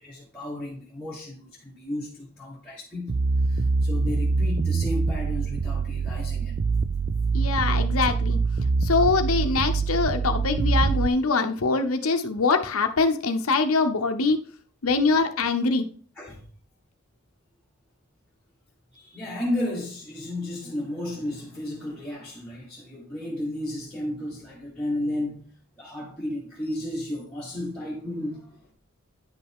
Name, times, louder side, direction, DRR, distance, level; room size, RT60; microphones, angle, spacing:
voice 1, 0.0-6.5 16.1-16.4 18.9-25.5 25.8-28.7, left 1 dB, 5° left, 1.6 m, -33 dB
sound 1, 3.1-11.1, right 4 dB, 45° right, 0.3 m, -24 dB
voice 2, 7.3-8.4 8.8-14.4 14.8-15.9, left 4 dB, 85° left, 0.8 m, -23 dB
9.6 x 5.5 x 3.6 m
head